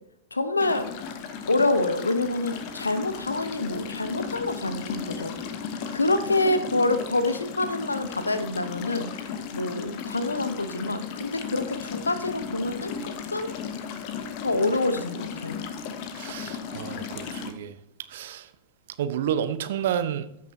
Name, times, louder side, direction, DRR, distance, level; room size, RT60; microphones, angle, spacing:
voice 1, 0.3-0.9 1.5-5.4 5.9-9.2 9.5-13.6 14.4-15.6, left 2 dB, 80° left, 0.8 m, -26 dB
sound 1, 0.6-17.5, left 6 dB, 45° left, 1.1 m, -35 dB
voice 2, 16.1-17.8 18.1-18.5 19.0-20.3, right 9 dB, 55° right, 0.7 m, -30 dB
13.5 x 6.5 x 2.8 m
figure-of-eight pair, 90°, 0 cm